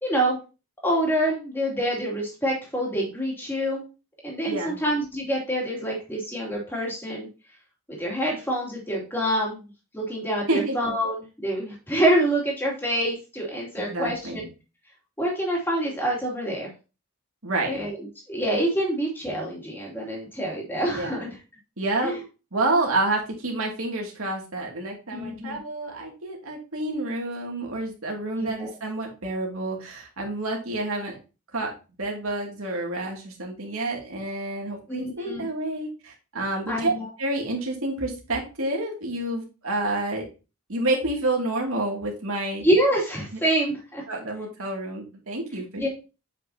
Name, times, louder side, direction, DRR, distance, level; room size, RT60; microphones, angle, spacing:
voice 1, 0.0-0.4 0.8-3.8 4.2-7.3 8.0-9.6 9.9-14.5 15.2-16.7 17.7-18.0 18.3-21.3 22.0-22.2 25.1-25.6 28.4-28.7 34.9-35.5 36.7-37.0 42.6-44.0 45.8-45.9, right 1 dB, 10° left, -3 dB, 2.7 m, -26 dB
voice 2, 4.5-4.8 10.5-10.8 13.8-14.5 17.4-17.7 20.9-21.2 21.8-22.1 22.5-31.2 31.5-31.7 32.0-36.9 37.2-40.3 40.7-42.6 44.1-45.9, right 2 dB, 75° right, 0 dB, 2.5 m, -29 dB
7.9 x 6.0 x 2.8 m, 0.31 s
head